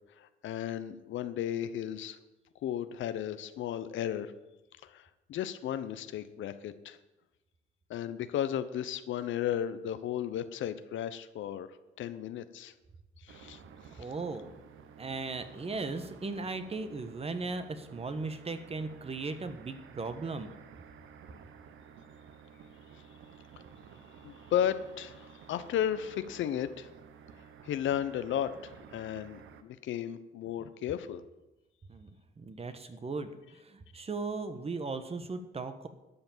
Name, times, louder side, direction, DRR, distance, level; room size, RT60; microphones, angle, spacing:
voice 1, 0.2-2.2 2.6-4.3 4.8-7.0 7.9-11.7 12.0-12.7 13.2-13.6 13.9-14.1 24.2-26.9 27.6-31.2, left 10 dB, 75° left, 12 dB, 0.8 m, -34 dB
sound 1, 13.3-29.6, right 7 dB, 80° right, 1.0 m, -53 dB
voice 2, 14.0-14.4 15.0-20.5 31.9-32.1 32.4-35.9, right 3 dB, 30° right, 9 dB, 1.1 m, -37 dB
12.0 x 5.9 x 7.3 m, 1.0 s
cardioid pair, 90°, 20 cm